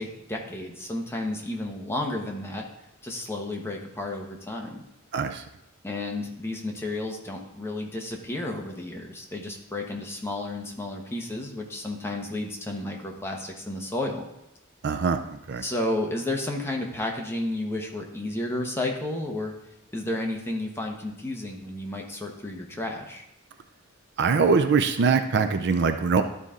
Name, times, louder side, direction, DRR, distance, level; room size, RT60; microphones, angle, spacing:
voice 1, 0.0-2.6 3.0-4.8 5.8-14.2 15.6-19.5 19.9-23.3, left 1 dB, 10° left, 0 dB, 1.0 m, -32 dB
voice 2, 5.1-5.4 14.8-15.6 24.2-26.2, right 5 dB, 55° right, 8 dB, 0.5 m, -23 dB
12.0 x 4.1 x 3.7 m, 0.87 s
head